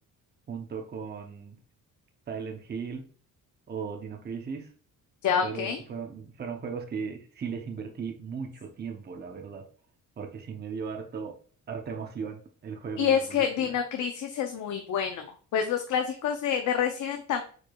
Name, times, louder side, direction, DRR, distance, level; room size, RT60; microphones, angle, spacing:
voice 1, 0.5-1.6 2.3-3.0 3.7-4.7 5.4-9.7 10.2-11.4 11.7-13.8, right 6 dB, 30° right, 3 dB, 0.7 m, -37 dB
voice 2, 5.2-5.8 13.0-15.3 15.5-17.4, left 8 dB, 60° left, 5 dB, 0.6 m, -27 dB
4.7 x 4.4 x 2.3 m, 0.42 s
cardioid pair, 140°, 33 cm